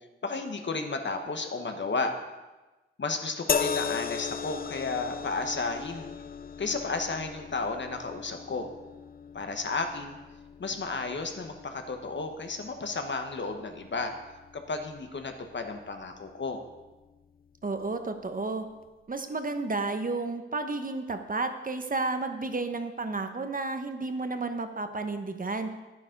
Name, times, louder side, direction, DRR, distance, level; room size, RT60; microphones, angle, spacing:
voice 1, 0.2-2.1 3.0-6.1 6.6-8.7 9.3-10.2 10.6-14.1 14.5-16.6, left 3 dB, 65° left, 5 dB, 1.3 m, -33 dB
sound 1, 3.5-16.8 17.8-18.0, left 6 dB, 45° left, 0.5 m, -38 dB
voice 2, 17.6-18.7 19.1-25.7, right 3 dB, 40° right, 7 dB, 1.0 m, -32 dB
10.5 x 9.5 x 5.3 m, 1.1 s
wide cardioid pair, 100°, 21 cm